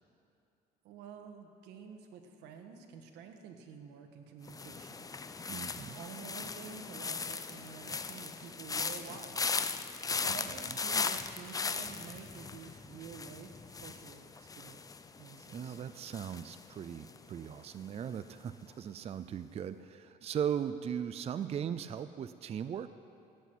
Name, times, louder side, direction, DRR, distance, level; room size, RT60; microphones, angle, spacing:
voice 1, 0.8-5.1 5.9-9.5 10.2-14.8 15.2-15.8, right 6 dB, 90° right, 5 dB, 1.5 m, -49 dB
sound 1, 4.5-17.5 17.8-18.2, left 4 dB, 20° left, 0.6 m, -38 dB
voice 2, 5.5-6.0 15.5-22.9, right 8 dB, 35° right, 12 dB, 0.5 m, -38 dB
15.5 x 8.3 x 9.5 m, 2.6 s
cardioid pair, 110°, 17 cm